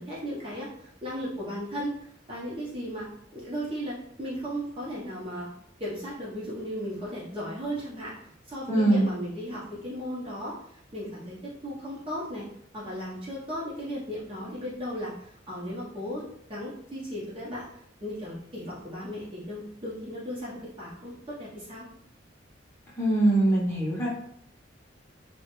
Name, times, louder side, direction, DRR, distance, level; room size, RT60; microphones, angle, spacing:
voice 1, 0.0-5.5 5.8-12.4 12.7-16.2 16.5-17.6 18.0-21.8, equal, 30° right, -7 dB, 0.6 m, -36 dB
voice 2, 8.7-9.1 23.0-24.1, right 2 dB, 15° left, -8 dB, 0.7 m, -22 dB
2.3 x 2.1 x 2.9 m, 0.68 s
head